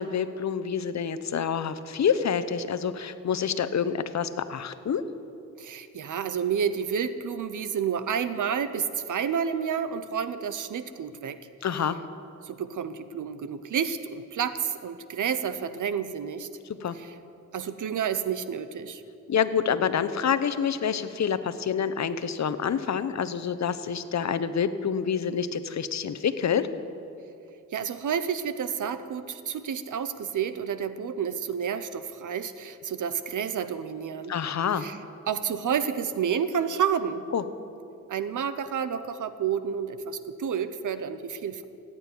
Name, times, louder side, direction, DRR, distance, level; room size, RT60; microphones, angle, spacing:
voice 1, 0.0-5.0 11.6-12.0 16.8-17.0 19.3-26.7 34.3-34.9 37.3-37.4, left 7 dB, 60° left, 12 dB, 0.9 m, -27 dB
voice 2, 5.6-11.4 12.4-16.5 16.9-17.1 17.5-19.0 27.7-34.3 34.8-35.0 35.3-37.2 38.1-41.6, right 7 dB, 70° right, 12 dB, 0.9 m, -30 dB
15.0 x 8.8 x 9.7 m, 2.7 s
cardioid pair, 75°, 32 cm